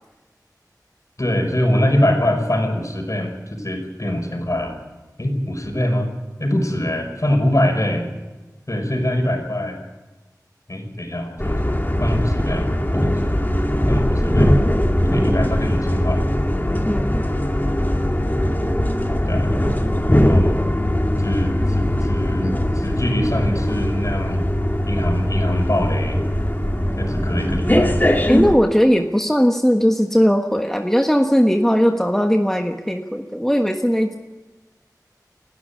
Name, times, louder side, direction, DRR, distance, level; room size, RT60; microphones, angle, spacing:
voice 1, 1.2-4.8 5.2-6.1 6.4-8.1 8.7-9.8 10.7-12.7 12.9-13.4 13.9-14.5 15.1-16.2 19.3-19.5 20.1-20.6 21.2-24.5 24.9-26.2 27.0-28.0, left 1 dB, 50° left, 4 dB, 5.4 m, -23 dB
sound 1, 11.4-28.5, equal, 25° left, 2.6 m, -20 dB
voice 2, 16.8-17.2 28.3-34.2, equal, 5° left, 3 dB, 1.4 m, -18 dB
30.0 x 12.5 x 8.5 m, 1.2 s
wide cardioid pair, 45°, 7 cm